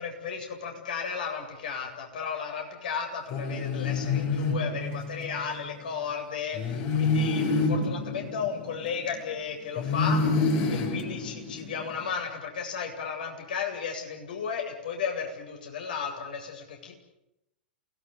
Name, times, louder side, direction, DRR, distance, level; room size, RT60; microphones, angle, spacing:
voice 1, 0.0-10.2 10.7-16.9, left 6 dB, 60° left, 2 dB, 7.8 m, -34 dB
sound 1, 3.3-5.4 6.5-9.2 9.8-12.0, left 3 dB, 40° left, 5.0 m, -28 dB
29.0 x 19.5 x 9.8 m, 0.88 s
figure-of-eight pair, 95°, 5 cm